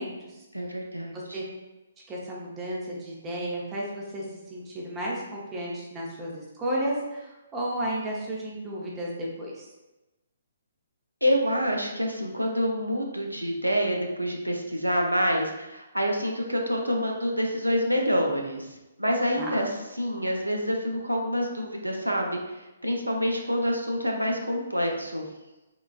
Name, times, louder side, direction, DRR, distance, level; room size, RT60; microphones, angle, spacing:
voice 1, 0.0-0.4 1.1-1.4 2.1-4.2 4.5-9.1 9.4-9.7 19.4-19.6, right 1 dB, 15° right, -4 dB, 0.7 m, -33 dB
voice 2, 0.5-1.4 11.2-19.7 20.0-25.2, equal, 85° right, 1 dB, 0.5 m, -27 dB
3.7 x 2.3 x 2.4 m, 1.0 s
figure-of-eight pair, 130°, 0 cm